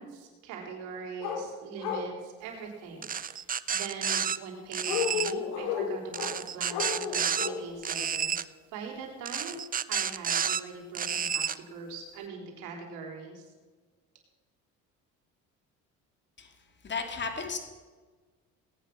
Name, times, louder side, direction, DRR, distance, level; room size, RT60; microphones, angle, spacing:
voice 1, 0.0-8.3 8.7-9.6 9.9-13.5, right 5 dB, 90° right, 1 dB, 4.0 m, -42 dB
sound 1, 1.2-1.4 1.8-2.1 4.8-6.3 6.7-7.6 8.0-8.1, left 7 dB, 85° left, 3.7 m, -32 dB
sound 2, 3.0-4.4 4.7-5.3 6.1-7.5 7.8-8.4 9.3-10.6 10.9-11.6, right 8 dB, 30° right, 0.6 m, -30 dB
voice 2, 16.4-17.6, left 5 dB, 35° left, 4 dB, 2.7 m, -35 dB
18.5 x 9.2 x 6.2 m, 1.4 s
supercardioid pair, 90°, 30 cm